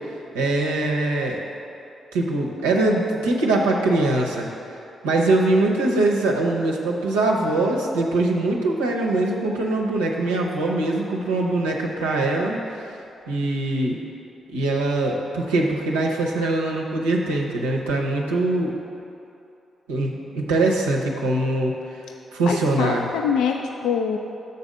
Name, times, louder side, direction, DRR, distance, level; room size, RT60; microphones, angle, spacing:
voice 1, 0.3-1.4 2.1-4.5 5.0-12.8 13.3-14.0 14.5-18.7 19.9-21.7 22.3-23.1, right 2 dB, 90° right, -2 dB, 0.7 m, -22 dB
voice 2, 22.4-24.2, left 7 dB, 75° left, 3 dB, 0.3 m, -24 dB
6.8 x 4.1 x 6.4 m, 2.7 s
hypercardioid pair, 40°, 0 cm